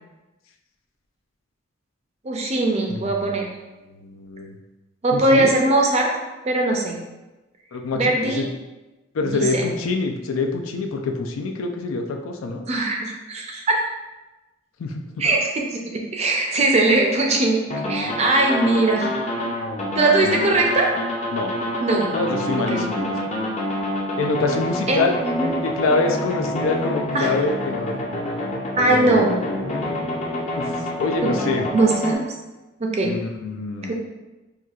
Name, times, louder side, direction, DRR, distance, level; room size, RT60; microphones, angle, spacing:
voice 1, 2.2-3.5 5.0-6.1 6.4-7.0 7.9-8.4 9.2-9.6 12.7-13.8 15.2-17.6 17.9-19.1 20.0-20.9 21.8-22.1 22.7-22.9 24.9-25.5 27.1-27.3 28.8-29.3 31.2-31.3 31.7-32.2 32.8-33.1 33.9-34.0, right 2 dB, 30° right, 0 dB, 0.4 m, -20 dB
voice 2, 2.9-3.4 3.9-4.5 5.1-5.6 7.7-8.5 9.1-12.7 14.8-15.2 20.2-20.5 21.3-21.5 22.1-23.2 24.2-25.2 25.6-28.0 28.9-31.6 33.0-33.9, left 3 dB, 85° left, 4 dB, 0.4 m, -26 dB
sound 1, 17.7-32.1, left 1 dB, 35° left, 0.5 m, -27 dB
4.2 x 2.3 x 2.3 m, 1.1 s
head